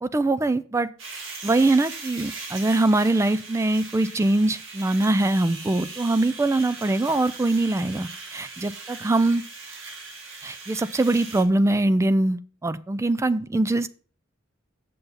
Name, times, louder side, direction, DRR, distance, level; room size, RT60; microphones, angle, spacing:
voice 1, 0.0-0.9 1.4-9.4 10.4-13.9, right 2 dB, 15° right, 15 dB, 0.3 m, -22 dB
sound 1, 1.0-11.4, right 4 dB, 70° right, 1.9 m, -40 dB
7.8 x 6.8 x 5.5 m, 0.42 s
head